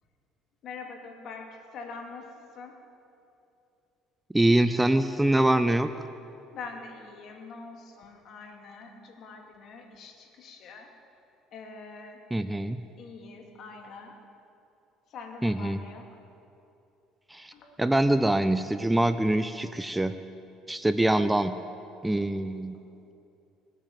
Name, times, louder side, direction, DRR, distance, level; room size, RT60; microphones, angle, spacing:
voice 1, 0.6-2.3 2.5-2.8 6.5-10.9 11.5-12.2 13.0-14.2 15.1-16.1 17.5-17.8 22.7-22.8, left 4 dB, 55° left, 2 dB, 2.6 m, -44 dB
voice 2, 4.3-5.9 12.3-12.8 15.4-15.8 17.3-17.5 17.8-20.2 20.7-21.6 22.0-22.8, right 1 dB, 10° right, 11 dB, 0.5 m, -24 dB
20.5 x 8.9 x 7.6 m, 2.7 s
supercardioid pair, 100°, 0 cm